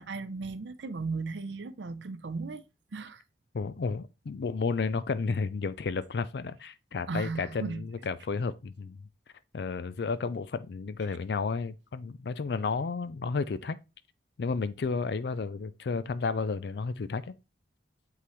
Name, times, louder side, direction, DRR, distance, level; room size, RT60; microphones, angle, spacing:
voice 1, 0.0-2.6 2.9-3.2 7.1-7.9, right 4 dB, 85° right, 0.6 m, -36 dB
voice 2, 3.5-9.0 9.5-13.8 14.4-17.2, left 4 dB, 65° left, 0.4 m, -32 dB
8.3 x 3.8 x 3.2 m
head